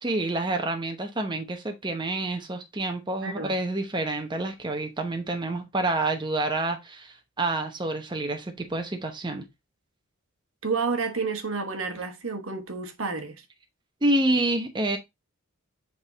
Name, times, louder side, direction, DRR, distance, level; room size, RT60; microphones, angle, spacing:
voice 1, 0.0-9.5 14.0-15.0, right 2 dB, 20° right, 0.8 m, -28 dB
voice 2, 3.2-3.5 10.6-13.4, right 4 dB, 70° right, 1.2 m, -30 dB
7.9 x 3.6 x 3.9 m
head